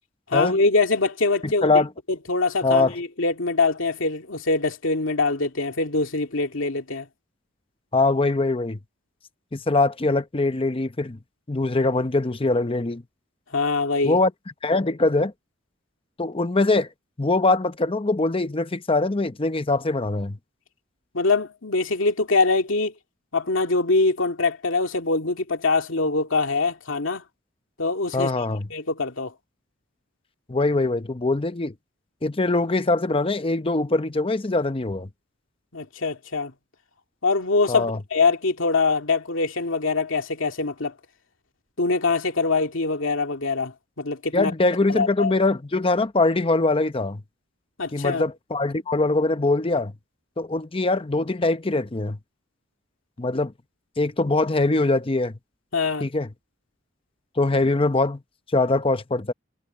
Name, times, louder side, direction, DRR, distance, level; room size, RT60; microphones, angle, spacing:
voice 1, 0.3-1.7 2.3-7.1 13.5-14.2 21.1-22.9 23.3-27.2 27.8-28.3 28.7-29.3 35.7-36.5 37.2-41.0 41.8-44.5 44.9-45.3 47.8-48.2 55.7-56.1, left 3 dB, 70° left, 2.4 m, -23 dB
voice 2, 1.4-1.9 2.6-2.9 7.9-8.8 9.5-11.2 11.5-13.0 14.0-14.3 14.6-15.3 16.2-16.9 17.2-20.4 28.1-28.7 30.5-31.7 32.2-35.1 37.7-38.0 44.3-47.2 47.9-49.9 50.4-52.2 53.2-53.5 54.0-55.4 56.0-56.3 57.4-58.2 58.5-59.3, left 2 dB, 25° left, 0.8 m, -22 dB
head